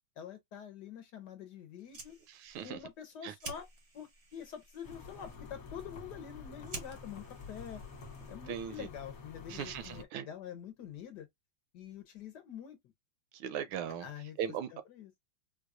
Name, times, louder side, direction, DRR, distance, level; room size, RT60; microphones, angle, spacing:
voice 1, 0.2-2.2 2.6-3.7 3.9-7.8 8.3-11.3 11.7-12.8 14.0-14.4 14.7-15.1, left 9 dB, 65° left, 1.1 m, -46 dB
Fire, 1.7-8.6, right 3 dB, 50° right, 0.7 m, -51 dB
voice 2, 2.3-2.8 3.2-3.3 8.5-8.9 9.5-10.3 13.3-14.1 14.4-14.7, right 9 dB, 75° right, 1.4 m, -38 dB
sound 1, 4.8-10.0, left 4 dB, 50° left, 1.4 m, -49 dB
4.6 x 2.3 x 2.4 m
omnidirectional pair, 2.3 m